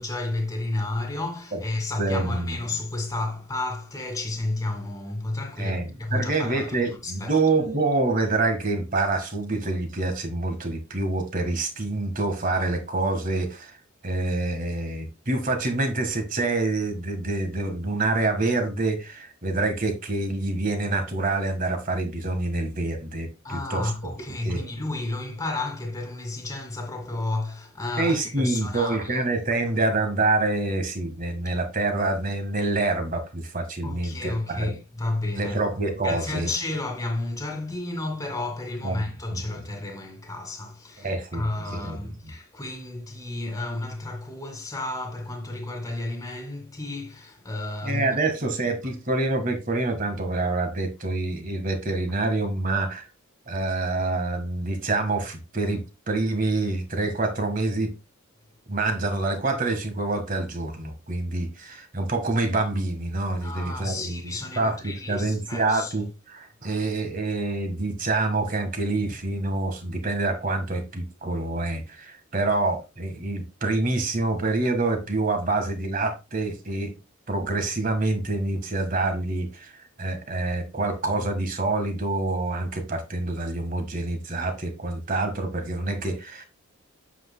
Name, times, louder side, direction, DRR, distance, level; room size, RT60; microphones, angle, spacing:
voice 1, 0.0-7.3 23.4-29.2 31.5-31.6 33.8-35.6 36.0-48.2 63.4-65.9, left 2 dB, 15° left, 1.9 m, -32 dB
voice 2, 2.0-2.6 5.6-13.8 14.0-23.9 24.2-24.6 28.0-34.7 35.3-36.5 38.8-39.4 41.0-42.3 47.8-53.1 53.5-57.9 58.7-76.9 77.3-79.7 80.0-86.4, right 2 dB, 40° right, 1.6 m, -26 dB
9.1 x 7.8 x 2.2 m
head